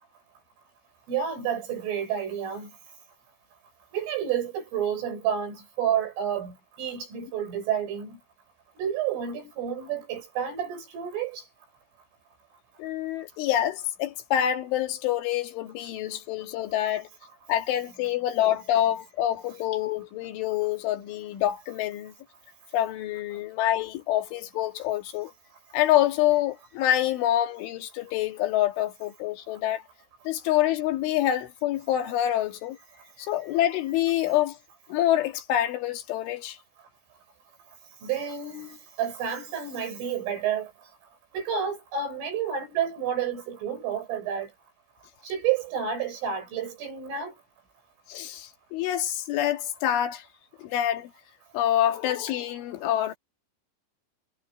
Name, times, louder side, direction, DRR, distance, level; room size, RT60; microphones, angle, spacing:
voice 1, 1.1-2.7 3.9-8.2 8.8-11.4 38.0-40.7 41.3-44.5 45.2-47.3, right 8 dB, 80° right, 8.9 m, -30 dB
voice 2, 12.8-17.1 17.5-22.1 22.7-25.3 25.7-29.8 30.3-32.8 33.2-34.6 34.9-36.6 48.1-50.2 50.6-51.1 51.5-53.1, left 12 dB, 75° left, 4.5 m, -26 dB
omnidirectional pair, 5.7 m